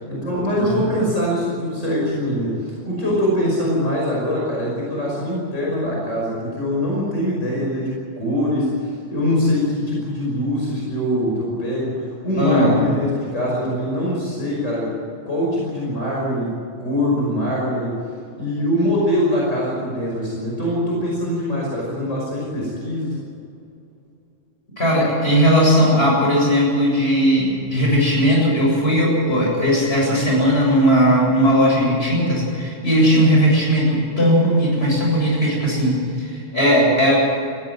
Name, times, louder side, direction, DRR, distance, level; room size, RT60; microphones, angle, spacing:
voice 1, 0.1-14.9 15.2-18.0 18.3-23.2, equal, 80° left, -4 dB, 6.1 m, -23 dB
voice 2, 12.4-13.0 24.8-37.2, equal, 55° left, -3 dB, 8.2 m, -17 dB
20.5 x 16.0 x 9.6 m, 2.5 s
omnidirectional pair, 1.3 m